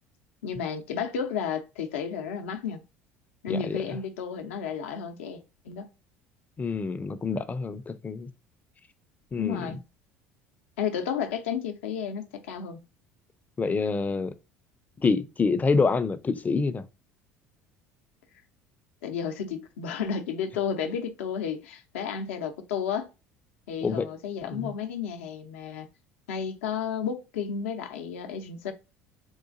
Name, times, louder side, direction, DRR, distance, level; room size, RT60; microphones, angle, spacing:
voice 1, 0.4-2.8 3.4-5.9 9.4-9.8 10.8-12.8 19.0-23.1 23.7-25.9 26.3-28.7, left 7 dB, 80° left, 0.5 m, -32 dB
voice 2, 3.5-3.8 6.6-8.3 9.3-9.8 13.6-14.3 15.0-16.8 23.8-24.1 24.5-24.7, left 4 dB, 25° left, 0.4 m, -27 dB
3.8 x 2.4 x 2.5 m
hypercardioid pair, 70°, 7 cm